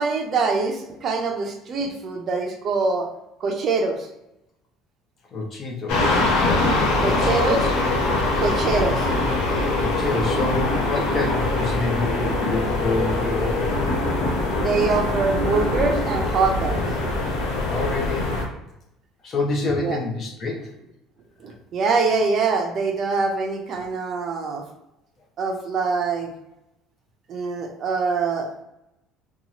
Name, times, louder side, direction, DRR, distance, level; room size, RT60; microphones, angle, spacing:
voice 1, 0.0-3.1 3.4-4.1 7.0-7.6 8.4-9.1 14.5-16.8 19.8-20.0 21.4-24.6 25.4-26.3 27.3-28.6, right 4 dB, 35° right, 2 dB, 0.5 m, -24 dB
voice 2, 5.3-6.3 7.1-7.7 9.8-13.8 17.7-18.4 19.2-20.7, left 3 dB, 30° left, 0 dB, 0.6 m, -28 dB
sound 1, 5.9-18.4, left 2 dB, 70° left, 0.8 m, -23 dB
2.8 x 2.3 x 2.8 m, 0.86 s
cardioid pair, 160°, 0 cm